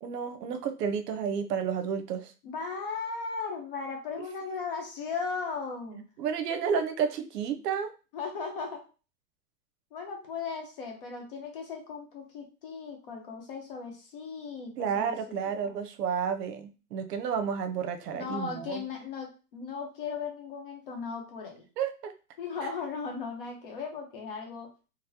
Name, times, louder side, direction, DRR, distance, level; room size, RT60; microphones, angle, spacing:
voice 1, 0.0-2.3 4.2-4.3 6.2-7.9 14.8-18.8 21.8-22.1 22.6-22.7, right 7 dB, 85° right, 8 dB, 0.7 m, -31 dB
voice 2, 2.4-6.1 8.1-8.8 9.9-15.8 18.1-21.7 22.4-24.7, left 5 dB, 35° left, 2 dB, 0.7 m, -37 dB
3.9 x 2.0 x 2.7 m, 0.33 s
supercardioid pair, 175°, 47 cm